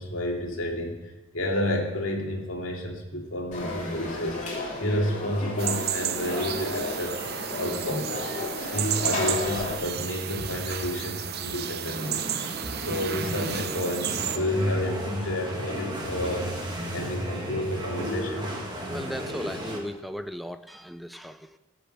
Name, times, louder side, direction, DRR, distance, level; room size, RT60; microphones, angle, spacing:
voice 1, 0.0-7.2 7.6-8.1 8.6-12.2 12.8-16.5 16.9-18.5, left 1 dB, 65° left, 0 dB, 2.5 m, -30 dB
Conversation / Crowd, 3.5-9.7, left 2 dB, 35° left, 2.8 m, -33 dB
sound 1, 5.6-14.4, right 9 dB, 50° right, 0.8 m, -32 dB
sound 2, 11.9-19.8, equal, 20° right, 2.1 m, -34 dB
voice 2, 18.8-21.6, equal, ahead, 10 dB, 0.5 m, -37 dB
17.0 x 6.8 x 7.9 m, 1.1 s
head